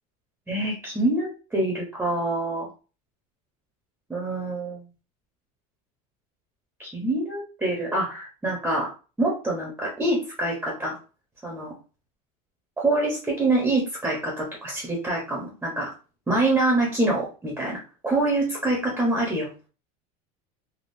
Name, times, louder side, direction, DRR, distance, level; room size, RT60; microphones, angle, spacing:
voice 1, 0.5-2.7 4.1-4.8 6.8-8.9 9.2-11.0 11.4-11.7 12.8-15.9 16.3-19.5, right 2 dB, 10° right, -2 dB, 0.9 m, -25 dB
3.6 x 2.3 x 2.7 m, 0.34 s
supercardioid pair, 130°, 20 cm